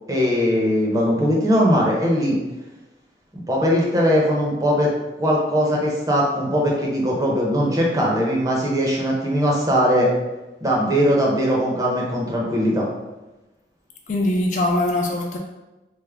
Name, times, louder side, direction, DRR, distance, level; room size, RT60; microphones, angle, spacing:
voice 1, 0.1-2.4 3.3-4.9 5.2-10.1 10.6-12.9, equal, 20° right, -3 dB, 0.6 m, -20 dB
voice 2, 14.1-15.4, left 1 dB, 45° left, 1 dB, 0.4 m, -22 dB
3.4 x 2.0 x 3.3 m, 1.1 s
head